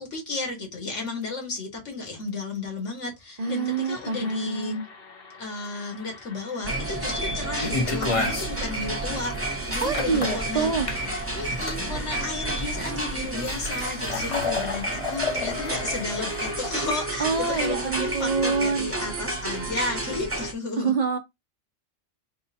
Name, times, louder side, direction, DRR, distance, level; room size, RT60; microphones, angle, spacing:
voice 1, 0.0-4.8 5.4-9.3 9.7-10.7 11.4-20.9, left 3 dB, 75° left, 1.8 m, -33 dB
sound 1, 3.4-18.3, left 4 dB, 50° left, 1.2 m, -47 dB
voice 2, 3.4-4.8 7.3-7.4 9.8-10.9 17.2-18.9 20.8-21.2, right 4 dB, 45° right, 0.5 m, -26 dB
sound 2, 6.6-20.5, right 2 dB, 15° right, 0.7 m, -31 dB
sound 3, 7.6-17.0, left 3 dB, 35° left, 0.6 m, -31 dB
3.7 x 2.1 x 4.1 m
omnidirectional pair, 1.3 m